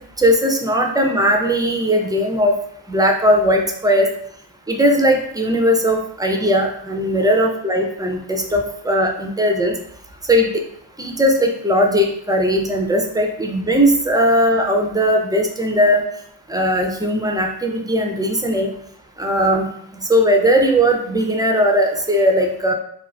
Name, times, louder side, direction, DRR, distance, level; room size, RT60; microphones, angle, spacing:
voice 1, 0.2-2.5 2.9-4.1 4.7-9.7 10.3-10.6 11.0-16.0 16.5-18.7 19.2-22.7, equal, 10° right, 2 dB, 0.3 m, -18 dB
2.4 x 2.3 x 3.2 m, 0.67 s
cardioid pair, 75°, 46 cm